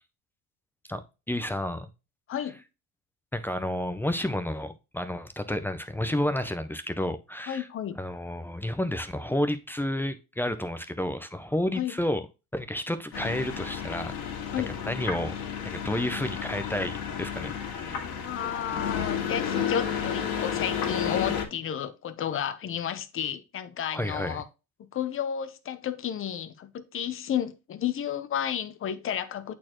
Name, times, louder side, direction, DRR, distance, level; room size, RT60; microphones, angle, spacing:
voice 1, 1.3-1.9 3.3-7.7 8.0-12.2 12.5-14.1 14.8-15.3 15.6-18.3 23.9-24.4, left 1 dB, 5° left, 0.5 m, -31 dB
voice 2, 7.5-8.0 11.7-12.0 14.5-14.8 18.2-24.5 24.9-29.5, left 9 dB, 30° left, 0.8 m, -32 dB
sound 1, 13.1-21.4, left 8 dB, 55° left, 2.1 m, -32 dB
8.4 x 4.4 x 3.0 m
cardioid pair, 125°, 43 cm